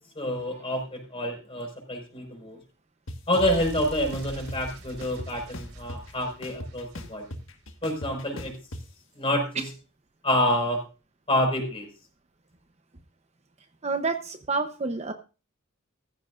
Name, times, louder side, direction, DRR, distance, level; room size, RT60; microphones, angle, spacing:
voice 1, 0.2-2.6 3.3-7.3 7.8-8.6 9.2-9.6 10.2-10.8 11.3-11.9, left 1 dB, 30° left, 2 dB, 5.3 m, -27 dB
sound 1, 3.1-3.2 3.6-4.6 5.0-6.1 6.4-8.8, left 1 dB, 70° left, 1.6 m, -38 dB
sound 2, 3.3-7.6, right 1 dB, 80° right, 4.2 m, -42 dB
voice 2, 13.8-15.1, right 4 dB, 35° right, 7 dB, 0.9 m, -28 dB
15.5 x 14.5 x 2.5 m, 0.33 s
head